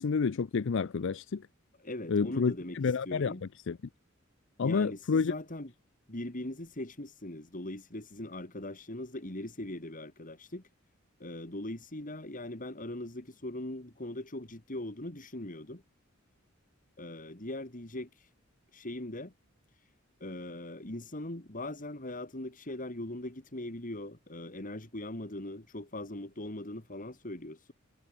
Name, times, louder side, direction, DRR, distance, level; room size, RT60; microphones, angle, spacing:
voice 1, 0.0-1.5 2.1-3.4 3.7-3.8 4.6-5.3, left 5 dB, 65° left, 0.5 m, -29 dB
voice 2, 1.8-2.8 3.0-3.4 4.6-5.7 6.1-10.6 11.2-15.8 17.0-18.1 18.7-19.3 20.2-27.7, left 1 dB, 40° left, 3.2 m, -40 dB
head